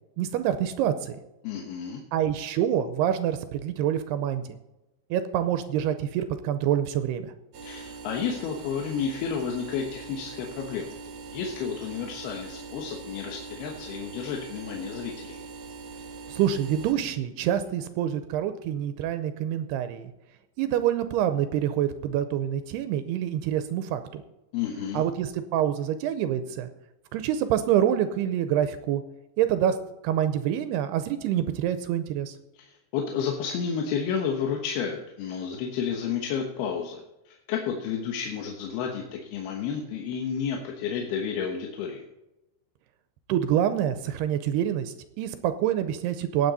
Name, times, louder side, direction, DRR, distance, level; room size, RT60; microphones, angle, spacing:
voice 1, 0.2-1.2 2.1-4.6 5.1-7.3 16.3-20.1 20.6-24.2 24.9-26.7 27.1-29.0 29.4-29.8 30.0-32.3 43.3-46.5, right 10 dB, 80° right, 10 dB, 2.6 m, -26 dB
voice 2, 1.4-2.0 7.6-10.9 11.3-15.4 24.5-25.0 32.6-42.0, left 7 dB, 70° left, 1 dB, 3.0 m, -31 dB
sound 1, 7.5-16.9, right 4 dB, 65° right, 1.7 m, -42 dB
18.5 x 7.7 x 4.1 m, 0.95 s
omnidirectional pair, 4.9 m